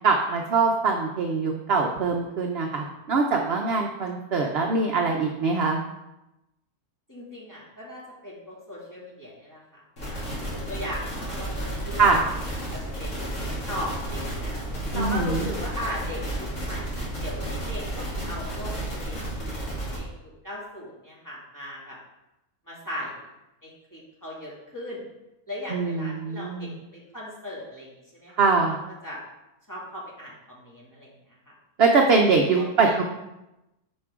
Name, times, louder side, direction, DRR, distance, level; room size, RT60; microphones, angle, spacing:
voice 1, 0.0-5.8 12.0-12.2 14.9-15.5 25.7-26.7 28.4-28.8 31.8-33.0, right 4 dB, 55° right, 2 dB, 0.8 m, -23 dB
voice 2, 7.1-12.4 12.7-13.3 13.7-14.5 14.9-16.9 17.2-19.2 19.9-22.0 22.7-23.3 23.6-25.1 25.5-28.8 29.0-29.2 29.7-31.1 31.5-31.6 32.1-33.0, left 1 dB, 10° left, -6 dB, 2.2 m, -38 dB
sound 1, 10.0-20.0, right 1 dB, 60° left, 2.8 m, -32 dB
9.6 x 5.3 x 3.6 m, 0.93 s
omnidirectional pair, 1.6 m